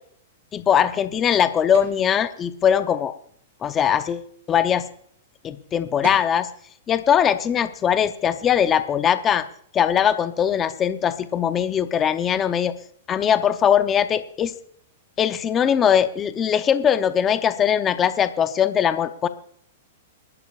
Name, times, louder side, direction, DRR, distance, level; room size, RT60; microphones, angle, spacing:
voice 1, 0.5-3.1 3.6-4.8 5.4-6.5 6.9-9.4 9.7-12.7 13.1-14.5 15.2-19.3, left 8 dB, 20° left, 11 dB, 0.7 m, -21 dB
sound 1, 1.7-2.0 5.7-5.8 6.0-6.4, right 6 dB, 60° right, 5.3 m, -37 dB
28.5 x 12.0 x 2.4 m, 0.63 s
hypercardioid pair, 155°, 0 cm